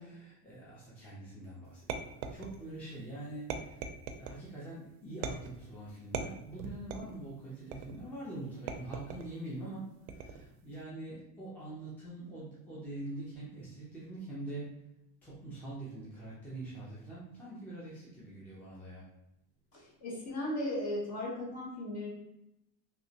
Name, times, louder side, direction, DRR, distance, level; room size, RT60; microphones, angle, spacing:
voice 1, 0.0-1.9 2.2-3.5 4.2-9.9 10.2-14.7 15.2-19.0, right 2 dB, 5° left, -8 dB, 0.5 m, -44 dB
sound 1, 1.9-2.8 3.5-4.4 5.2-5.7 6.1-7.2 7.7-8.1 8.7-9.3 10.1-10.5, right 6 dB, 80° right, 0.5 m, -40 dB
voice 2, 19.7-22.1, left 1 dB, 45° left, -4 dB, 1.2 m, -37 dB
3.1 x 2.9 x 2.7 m, 0.87 s
cardioid pair, 170°, 34 cm